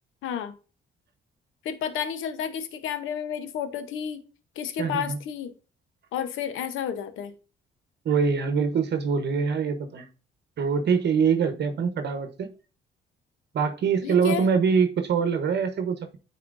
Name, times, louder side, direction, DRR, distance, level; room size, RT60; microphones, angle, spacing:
voice 1, 0.2-0.5 1.6-4.2 4.6-5.5 6.1-7.3 14.0-14.4, left 8 dB, 85° left, 10 dB, 0.9 m, -31 dB
voice 2, 4.8-5.2 8.0-10.1 10.6-12.5 13.5-16.2, right 6 dB, 60° right, 8 dB, 1.0 m, -24 dB
9.4 x 4.3 x 2.6 m, 0.35 s
cardioid pair, 90°, 20 cm